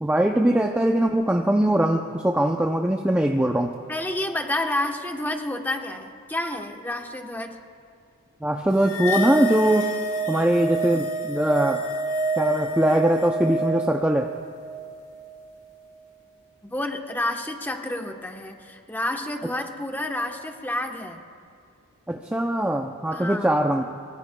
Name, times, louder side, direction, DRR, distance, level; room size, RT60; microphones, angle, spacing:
voice 1, 0.0-3.7 8.4-9.9 10.3-11.9 12.4-14.3 22.1-23.9, right 1 dB, 5° right, 2 dB, 0.5 m, -21 dB
voice 2, 3.9-7.6 16.6-21.2 23.1-23.5, left 1 dB, 10° left, 3 dB, 1.0 m, -29 dB
sound 1, 8.8-15.4, right 2 dB, 80° left, 1.8 m, -28 dB
23.0 x 23.0 x 2.3 m, 2.3 s
head